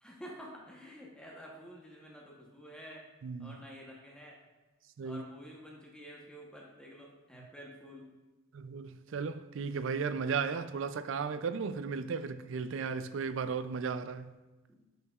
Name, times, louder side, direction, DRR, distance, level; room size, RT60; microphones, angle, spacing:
voice 1, 0.0-3.1 3.4-4.4 5.0-8.1 14.7-14.8, equal, 5° left, 0.9 m, -50 dB
voice 2, 3.2-3.6 5.0-5.2 7.3-7.5 8.5-14.3, right 5 dB, 65° right, 0.4 m, -35 dB
10.0 x 6.9 x 2.4 m
head